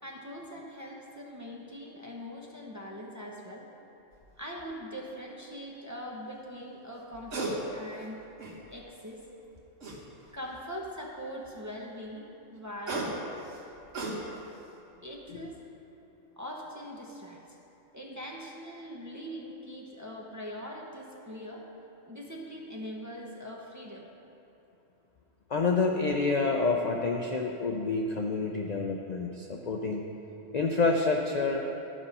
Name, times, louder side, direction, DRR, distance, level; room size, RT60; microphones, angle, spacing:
voice 1, 0.0-3.7 4.4-8.2 8.7-9.2 10.3-12.3 12.5-13.3 15.0-15.6 16.4-17.6 17.9-21.7 22.1-24.1, equal, 15° right, -2 dB, 0.7 m, -42 dB
sound 1, 4.1-4.3 7.0-7.6 8.0-8.8 9.8-10.5 12.5-14.6 15.0-15.3, right 2 dB, 70° right, 1.7 m, -36 dB
voice 2, 25.5-30.1 30.5-31.6, left 3 dB, 50° left, 2 dB, 0.5 m, -28 dB
12.5 x 5.6 x 5.3 m, 2.9 s
omnidirectional pair, 1.3 m